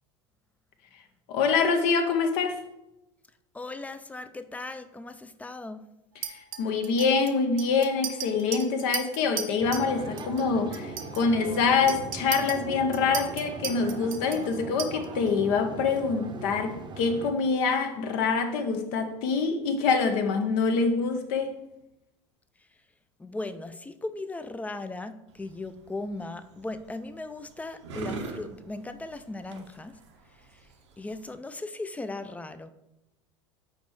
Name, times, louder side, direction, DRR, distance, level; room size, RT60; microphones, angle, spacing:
voice 1, 1.3-2.6 6.2-21.6, left 5 dB, 65° left, 0.8 m, -25 dB
voice 2, 3.5-5.9 23.2-30.0 30.5-30.6 31.0-32.7, left 2 dB, 10° left, 0.4 m, -37 dB
Chink clink, 6.2-9.9 10.2-10.5 10.7-15.3, right 8 dB, 60° right, 0.9 m, -37 dB
sound 1, 9.6-17.3, right 4 dB, 30° right, 0.7 m, -40 dB
sound 2, 25.3-31.3, right 3 dB, 90° right, 1.0 m, -43 dB
5.2 x 4.3 x 4.6 m
supercardioid pair, 100°, 15 cm